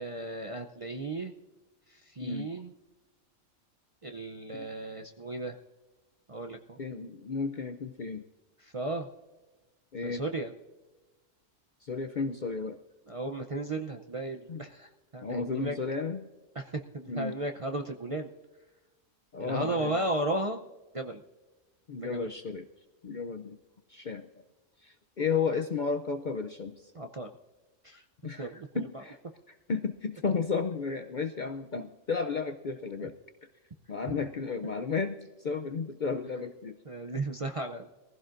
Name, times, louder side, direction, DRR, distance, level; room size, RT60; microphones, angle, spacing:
voice 1, 0.0-1.3 1.9-2.7 4.0-5.6 6.3-6.8 8.6-9.1 10.0-10.5 13.1-15.8 16.5-18.3 19.4-20.6 20.9-21.2 22.0-22.4 26.9-27.3 27.8-28.0 28.4-29.0 33.0-33.1 36.8-37.9, right 2 dB, 35° right, 2 dB, 0.5 m, -35 dB
voice 2, 6.8-8.2 9.9-10.2 11.8-12.8 14.5-14.6 15.2-16.2 17.1-17.4 19.3-20.0 21.9-22.6 23.0-23.6 23.9-24.2 24.8-26.7 28.2-28.5 28.8-29.2 29.7-33.1 33.9-36.8, left 5 dB, 50° left, 7 dB, 0.6 m, -33 dB
22.0 x 15.5 x 2.6 m, 1.2 s
omnidirectional pair, 1.3 m